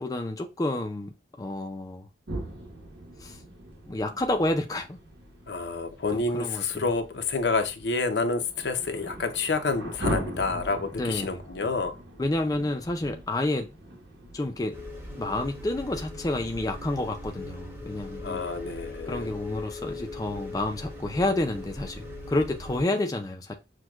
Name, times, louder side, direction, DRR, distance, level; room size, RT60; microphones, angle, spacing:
voice 1, 0.0-2.1 3.2-3.4 3.9-5.0 6.1-6.9 11.0-11.4 12.2-13.7 14.3-14.8 15.2-18.5 19.1-23.5, left 2 dB, 20° left, 0.4 m, -29 dB
sound 1, 2.3-16.8, right 1 dB, 90° right, 1.1 m, -40 dB
voice 2, 5.5-12.0 18.2-19.3, left 3 dB, 75° left, 0.6 m, -28 dB
sound 2, 14.7-22.8, left 2 dB, 15° right, 0.9 m, -39 dB
6.1 x 2.2 x 2.3 m
head